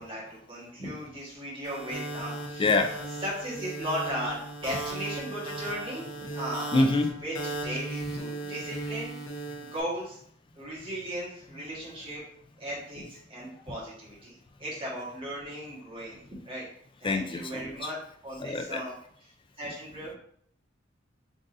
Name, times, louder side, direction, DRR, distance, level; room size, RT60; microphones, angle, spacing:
voice 1, 0.0-2.7 3.2-6.8 7.2-9.1 9.6-10.2 10.5-12.2 12.6-16.7 17.0-18.0 18.2-18.9 19.6-20.1, equal, 30° right, -6 dB, 1.5 m, -37 dB
sound 1, 1.6-9.8, right 2 dB, 75° left, 0.8 m, -37 dB
voice 2, 2.6-2.9 6.7-7.2 8.1-8.6 17.0-17.9 18.4-18.8, left 2 dB, 25° left, 5 dB, 0.4 m, -26 dB
3.7 x 2.7 x 3.8 m, 0.64 s
head